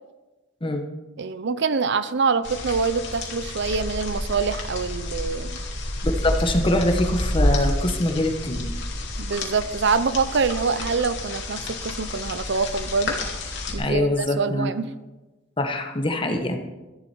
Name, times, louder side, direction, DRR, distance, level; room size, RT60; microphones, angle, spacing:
voice 1, 1.2-5.6 9.2-13.2 13.7-14.9 16.3-16.4, right 5 dB, 65° right, 13 dB, 0.6 m, -25 dB
sound 1, 2.4-13.7, left 1 dB, 65° left, 2.5 m, -29 dB
voice 2, 6.0-8.7 13.8-14.7 15.6-16.6, left 1 dB, 25° left, 4 dB, 1.4 m, -24 dB
13.5 x 11.0 x 4.6 m, 1.1 s
head